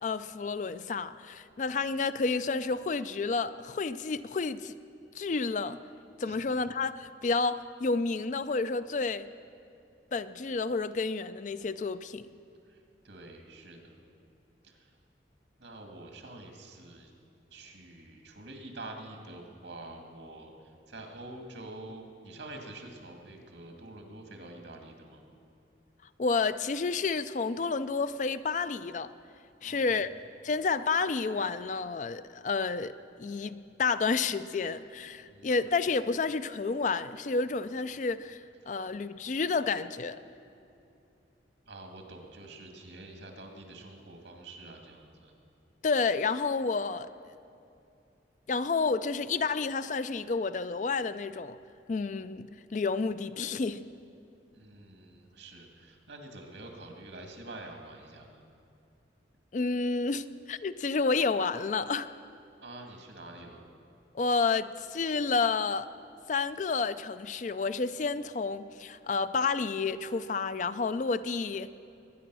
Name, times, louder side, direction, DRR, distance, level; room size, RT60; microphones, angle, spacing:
voice 1, 0.0-4.7 5.1-5.8 6.2-9.3 10.1-12.3 26.2-29.1 29.6-30.1 30.4-32.9 33.2-38.4 38.7-40.2 45.8-47.1 48.5-51.6 51.9-53.8 59.5-62.1 64.1-65.9 66.3-71.7, left 4 dB, 40° left, 0.4 m, -30 dB
voice 2, 12.6-14.0 14.6-15.0 15.6-17.1 17.5-25.3 29.6-30.1 35.2-35.6 38.6-38.9 41.7-45.3 54.5-58.4 62.6-63.6, right 2 dB, 85° right, 2.1 m, -47 dB
21.5 x 9.8 x 6.2 m
head